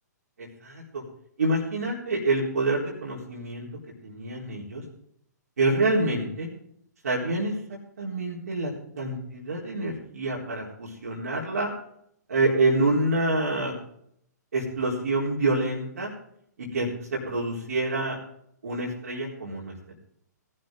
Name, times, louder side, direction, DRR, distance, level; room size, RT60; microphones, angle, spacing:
voice 1, 0.4-1.0 1.4-3.7 4.0-4.8 5.6-6.5 7.0-7.5 8.0-11.7 12.3-13.7 14.5-16.1 16.6-18.2 18.6-19.7, right 2 dB, 60° right, -3 dB, 4.2 m, -27 dB
18.5 x 12.0 x 3.9 m, 0.69 s
figure-of-eight pair, 120°, 10 cm